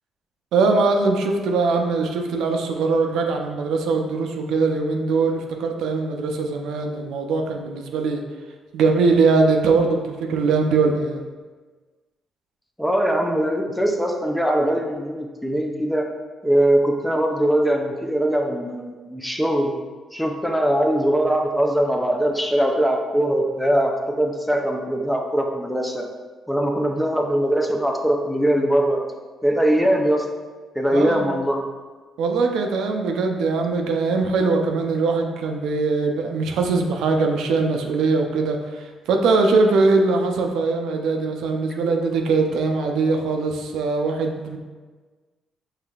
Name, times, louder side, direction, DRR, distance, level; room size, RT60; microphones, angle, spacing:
voice 1, 0.5-8.2 8.7-11.2 30.9-31.3 32.2-44.6, right 4 dB, 85° right, 3 dB, 0.4 m, -21 dB
voice 2, 12.8-16.1 16.4-19.7 20.1-26.0 26.5-29.0 29.4-30.3 30.7-31.6, right 1 dB, ahead, 1 dB, 0.5 m, -21 dB
5.6 x 3.2 x 2.3 m, 1.4 s
cardioid pair, 90°, 0 cm